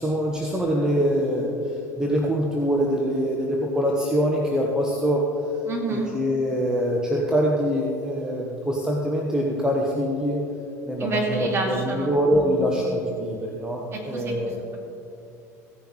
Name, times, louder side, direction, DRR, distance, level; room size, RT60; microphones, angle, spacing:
voice 1, 0.0-5.2 5.9-10.4 10.8-14.6, equal, 5° right, -2 dB, 1.3 m, -24 dB
voice 2, 5.7-6.1 11.0-12.8 13.9-14.8, right 2 dB, 30° right, -2 dB, 2.7 m, -29 dB
16.0 x 10.5 x 3.2 m, 2.8 s
figure-of-eight pair, 75°, 9 cm